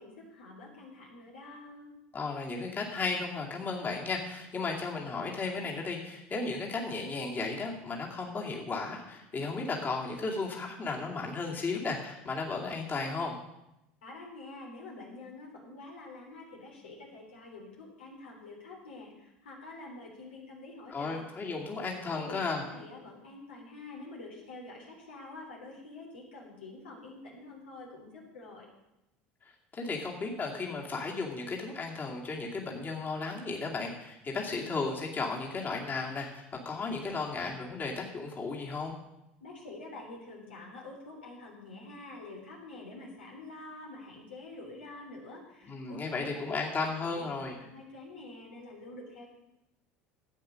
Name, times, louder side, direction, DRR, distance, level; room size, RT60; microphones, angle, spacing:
voice 1, 0.0-1.9 14.0-21.3 22.0-28.7 39.4-46.6 47.0-47.3 47.6-49.3, left 2 dB, 90° left, -2 dB, 3.5 m, -47 dB
voice 2, 2.1-13.3 20.9-22.6 29.7-38.9 45.6-47.6, left 3 dB, 35° left, -1 dB, 2.4 m, -34 dB
12.0 x 8.1 x 6.4 m, 0.91 s
hypercardioid pair, 80°, 6 cm